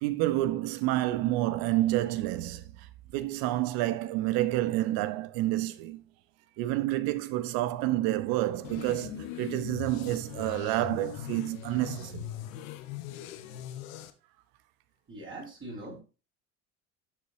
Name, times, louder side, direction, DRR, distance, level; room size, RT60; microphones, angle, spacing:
voice 1, 0.0-2.9 3.1-6.0 6.6-12.3, right 15 dB, 55° right, 1.0 m, -29 dB
sound 1, 8.6-14.1, left 11 dB, 65° left, 1.2 m, -40 dB
voice 2, 15.1-16.0, right 2 dB, 30° right, 4.6 m, -42 dB
11.5 x 7.1 x 2.7 m
figure-of-eight pair, 65°, 44 cm